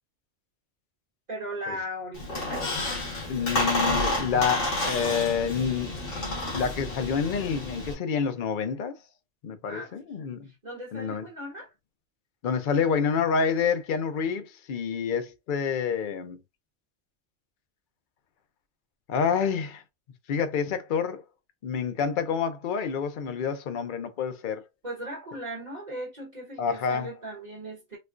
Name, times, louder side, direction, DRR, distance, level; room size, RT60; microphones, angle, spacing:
voice 1, 1.3-2.7 9.6-10.0 10.4-11.7 24.8-28.0, right 1 dB, 40° right, 1.3 m, -38 dB
Squeak, 2.1-7.9, left 1 dB, 75° left, 1.8 m, -30 dB
voice 2, 3.3-5.9 6.5-9.0 9.4-10.5 10.9-11.2 12.4-16.4 19.1-19.8 20.3-21.2 21.6-24.6 26.6-27.1, left 6 dB, 55° left, 0.7 m, -28 dB
4.2 x 2.3 x 2.4 m
omnidirectional pair, 1.2 m